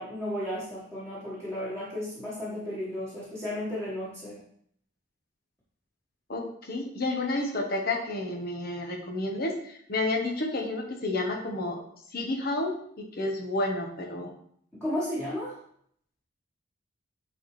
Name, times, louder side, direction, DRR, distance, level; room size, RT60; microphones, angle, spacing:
voice 1, 0.0-4.4 14.8-15.6, left 1 dB, 10° left, -9 dB, 1.6 m, -34 dB
voice 2, 6.3-11.8 12.1-12.8 13.2-14.3, left 2 dB, 50° left, 1 dB, 1.1 m, -30 dB
8.9 x 4.2 x 3.3 m, 0.65 s
head